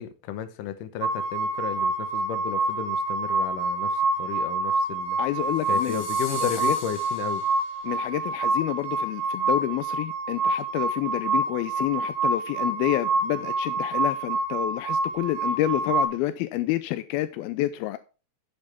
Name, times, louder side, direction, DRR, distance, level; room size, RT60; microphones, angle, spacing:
voice 1, 0.0-5.2 5.7-7.4, left 10 dB, 70° left, 2.5 m, -33 dB
sound 1, 1.0-16.1, right 2 dB, 75° right, 2.9 m, -27 dB
voice 2, 5.2-6.0 6.6-6.8 7.8-18.0, left 15 dB, 85° left, 2.5 m, -28 dB
sound 2, 5.5-8.0, left 3 dB, 35° left, 4.1 m, -42 dB
10.5 x 8.6 x 3.5 m
omnidirectional pair, 4.3 m